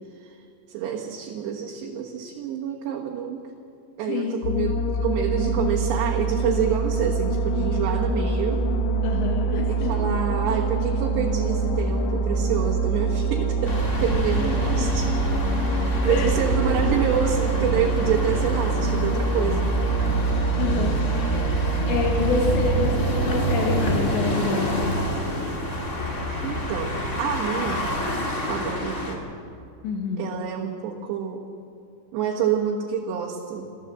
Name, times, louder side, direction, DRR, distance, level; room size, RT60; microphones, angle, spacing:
voice 1, 0.7-3.5 4.0-8.7 9.7-15.1 15.8-19.7 26.4-26.9 27.2-27.9 28.4-29.2 30.2-31.4 32.1-33.7, right 8 dB, 75° right, -1 dB, 3.4 m, -27 dB
voice 2, 4.1-4.5 9.0-10.1 14.8-14.9 16.1-16.4 16.9-17.0 18.4-18.5 20.6-21.0 21.9-25.0 29.8-30.3, left 4 dB, 80° left, 1 dB, 4.1 m, -27 dB
sound 1, 4.4-22.7, right 3 dB, 55° left, 2.0 m, -25 dB
sound 2, 13.6-29.1, left 1 dB, 30° left, 1.5 m, -28 dB
27.0 x 14.5 x 7.8 m, 2.6 s
omnidirectional pair, 5.1 m